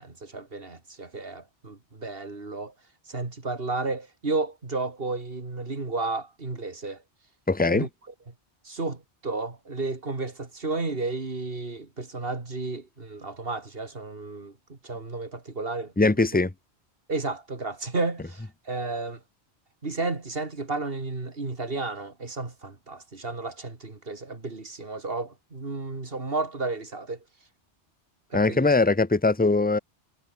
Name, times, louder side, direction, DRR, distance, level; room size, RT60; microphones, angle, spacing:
voice 1, 0.0-2.7 3.1-7.0 7.7-7.9 8.6-16.1 17.1-19.2 19.8-27.2 28.3-28.7, right 3 dB, 55° right, 3.0 m, -32 dB
voice 2, 7.5-7.9 16.0-16.5 28.3-29.8, left 3 dB, 10° left, 0.9 m, -21 dB
omnidirectional pair, 1.2 m